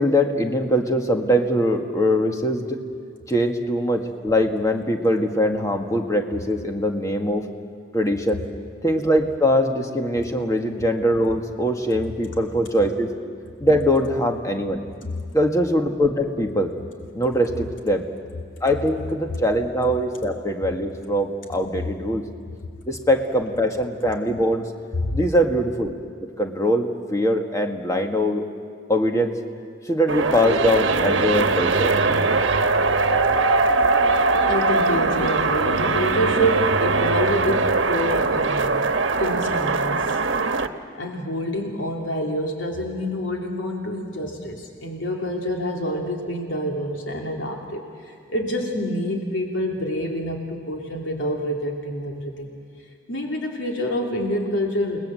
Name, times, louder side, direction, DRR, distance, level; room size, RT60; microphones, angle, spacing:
voice 1, 0.0-2.8 3.3-7.4 7.9-8.4 8.8-13.1 13.6-14.8 15.3-16.7 17.1-18.0 18.6-22.2 22.9-24.7 25.1-25.9 26.4-28.5 28.9-29.3 29.9-31.9 32.6-32.7, equal, 15° left, 3 dB, 1.8 m, -22 dB
sound 1, 30.1-40.7, right 3 dB, 75° right, 1.2 m, -21 dB
voice 2, 34.4-38.8 39.2-40.2 40.9-52.5 53.1-55.0, equal, 80° left, 1 dB, 3.0 m, -27 dB
29.5 x 19.5 x 7.7 m, 2.2 s
head